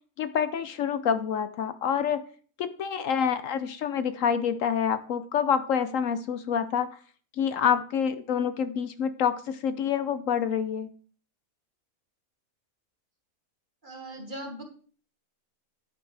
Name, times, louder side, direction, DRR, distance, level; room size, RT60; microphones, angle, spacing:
voice 1, 0.2-2.2 2.6-6.9 7.4-10.9, left 8 dB, 70° left, 11 dB, 1.0 m, -27 dB
voice 2, 13.8-14.6, right 1 dB, 35° right, 3 dB, 1.9 m, -39 dB
10.0 x 9.4 x 3.3 m, 0.43 s
omnidirectional pair, 1.5 m